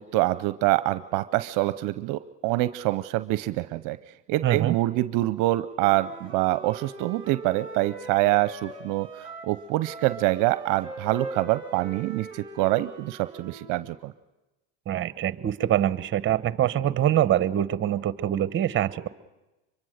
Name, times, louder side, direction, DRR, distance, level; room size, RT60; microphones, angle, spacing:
voice 1, 0.0-4.0 4.3-14.1, right 18 dB, 60° right, 14 dB, 0.7 m, -25 dB
voice 2, 4.4-4.7 14.9-19.1, right 12 dB, 35° right, 16 dB, 0.9 m, -24 dB
Wind instrument woodwind instrument, 5.7-9.6 9.8-13.8, right 3 dB, 15° right, 4.3 m, -41 dB
24.0 x 23.0 x 6.6 m, 1.0 s
supercardioid pair, 105°, 36 cm